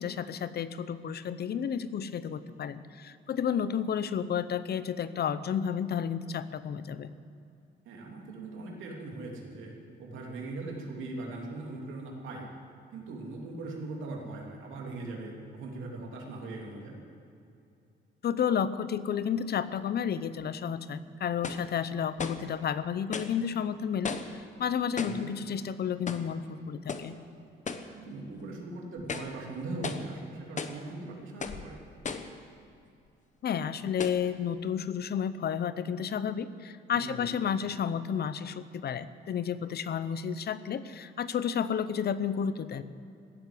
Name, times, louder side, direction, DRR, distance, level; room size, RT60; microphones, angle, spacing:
voice 1, 0.0-7.1 18.2-27.2 33.4-42.8, left 8 dB, 55° left, 14 dB, 0.7 m, -31 dB
voice 2, 7.8-9.7 10.0-12.5 12.9-17.0 25.0-25.2 27.9-31.8 36.9-37.3, right 2 dB, 85° right, 0 dB, 3.1 m, -40 dB
sound 1, 21.4-21.7 22.2-22.5 23.1-23.4 24.0-24.4 25.0-25.3 26.1-26.4 26.9-27.1 27.7-27.9 28.4-28.5 29.0-29.4 29.8-30.1 30.6-30.8 31.4-31.7 32.0-32.4 33.1-33.2 34.0-34.3, left 5 dB, 40° left, 1.1 m, -36 dB
16.5 x 8.1 x 9.9 m, 2.6 s
cardioid pair, 90°, 20 cm